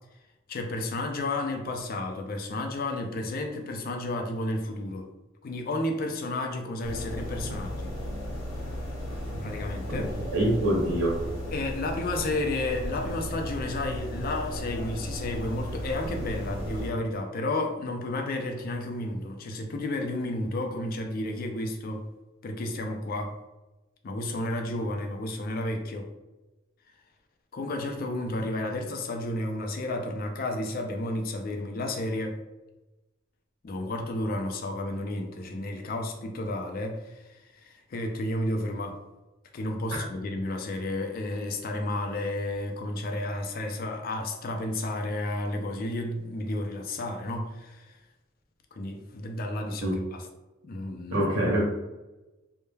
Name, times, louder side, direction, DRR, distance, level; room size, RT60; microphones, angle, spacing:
voice 1, 0.5-5.1 5.4-8.0 9.4-10.1 11.5-22.1 22.4-23.4 24.0-26.1 27.5-32.4 33.6-39.0 39.5-48.0 48.7-50.3 50.6-51.2, left 1 dB, 45° left, 4 dB, 0.4 m, -32 dB
sound 1, 6.8-16.9, equal, 90° left, 1.1 m, -35 dB
voice 2, 10.0-11.2 49.8-50.0 51.1-51.6, right 1 dB, 65° right, -4 dB, 0.7 m, -25 dB
2.2 x 2.1 x 3.1 m, 1.1 s
head